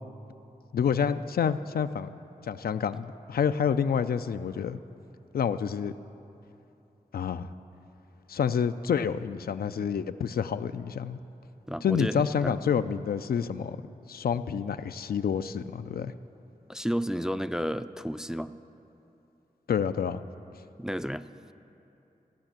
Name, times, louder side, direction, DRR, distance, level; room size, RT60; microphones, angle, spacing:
voice 1, 0.7-2.1 2.4-4.8 5.3-5.9 7.1-7.5 8.3-11.2 11.8-16.1 19.7-20.2, left 7 dB, 90° left, 11 dB, 0.4 m, -28 dB
voice 2, 11.7-12.2 12.4-12.6 16.7-18.5 20.8-21.2, equal, 5° right, 11 dB, 0.3 m, -31 dB
15.5 x 5.9 x 8.8 m, 2.9 s
wide cardioid pair, 65°, 15 cm